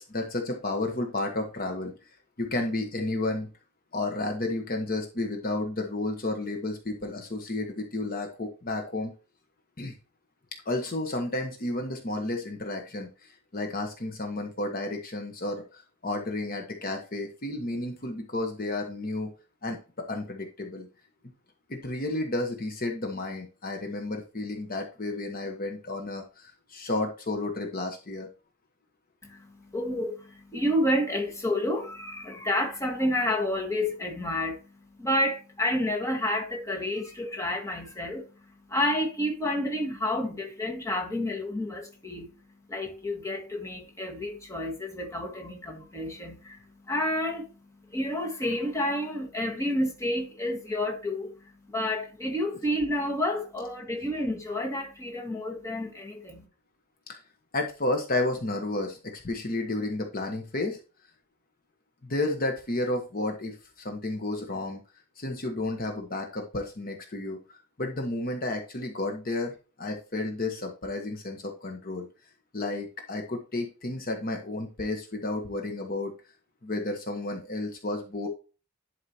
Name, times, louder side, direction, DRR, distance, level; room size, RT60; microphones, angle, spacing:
voice 1, 0.0-1.9 2.4-3.5 3.9-9.1 9.8-9.9 10.6-19.3 19.6-19.8 20.1-20.9 21.7-28.3 57.1-57.2 57.5-60.8 62.0-64.8 65.2-72.1 72.5-76.1 76.6-78.3, left 2 dB, 45° left, 1.2 m, -32 dB
voice 2, 29.2-42.3 42.7-56.4, left 1 dB, 15° left, 1.6 m, -30 dB
11.0 x 4.7 x 2.9 m
head